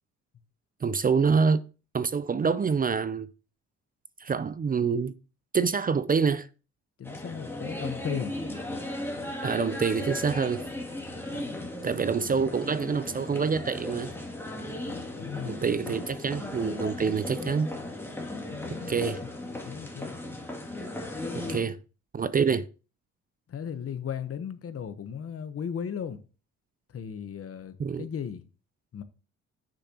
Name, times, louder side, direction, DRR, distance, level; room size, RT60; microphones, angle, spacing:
voice 1, 0.8-1.6 1.9-3.3 4.2-5.1 5.5-6.5 9.4-10.6 11.8-14.1 15.4-17.7 18.9-19.2 21.3-21.8 22.1-22.7 27.8-28.1, right 5 dB, 30° right, 0.5 m, -26 dB
voice 2, 7.0-8.3 11.3-11.7 12.2-12.5 14.8-16.1 18.5-19.1 19.6-20.1 21.4-21.7 23.5-26.2 26.9-28.4 28.9-29.0, left 8 dB, 50° left, 1.0 m, -37 dB
sound 1, 7.0-21.6, left 1 dB, 10° left, 2.4 m, -36 dB
9.8 x 6.7 x 2.9 m
cardioid pair, 90°, 30 cm